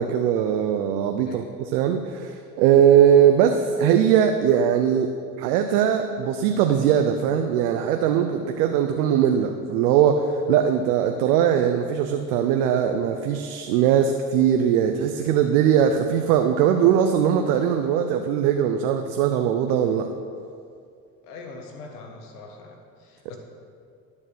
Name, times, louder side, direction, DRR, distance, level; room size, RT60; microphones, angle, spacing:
voice 1, 0.0-20.1, right 9 dB, 80° right, 6 dB, 0.7 m, -20 dB
voice 2, 21.2-23.4, left 3 dB, 90° left, 3 dB, 1.5 m, -42 dB
11.5 x 5.3 x 6.4 m, 2.3 s
hypercardioid pair, 75°, 45 cm